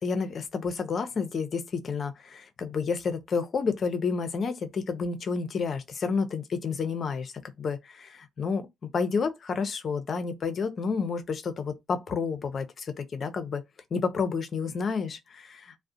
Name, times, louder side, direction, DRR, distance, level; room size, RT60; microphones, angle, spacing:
voice 1, 0.0-7.3 7.6-8.7 8.9-13.6 13.9-15.8, left 5 dB, 55° left, 0.6 m, -30 dB
2.3 x 2.1 x 2.6 m
supercardioid pair, 60°, 0 cm